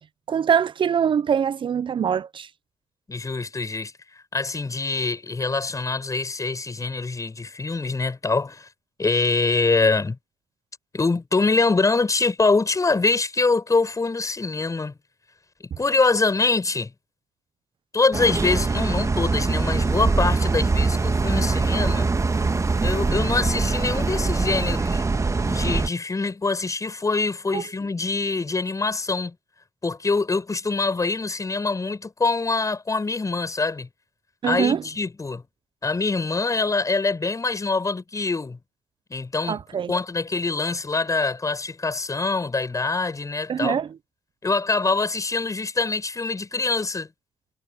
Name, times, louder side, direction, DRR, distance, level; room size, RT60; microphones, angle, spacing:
voice 1, 0.3-2.5 27.5-27.6 34.4-34.8 39.5-39.9 43.5-44.0, right 7 dB, 50° right, 0.9 m, -23 dB
voice 2, 3.1-3.9 4.3-8.7 9.0-10.2 10.9-14.9 15.6-16.9 17.9-22.1 22.8-25.0 25.4-29.3 29.8-33.9 34.4-35.4 35.8-38.6 39.1-39.6 39.9-43.8 44.4-47.1, left 3 dB, 30° left, 7.8 m, -24 dB
sound 1, 18.1-25.9, right 3 dB, 30° right, 1.7 m, -23 dB
hypercardioid pair, 45°, 11 cm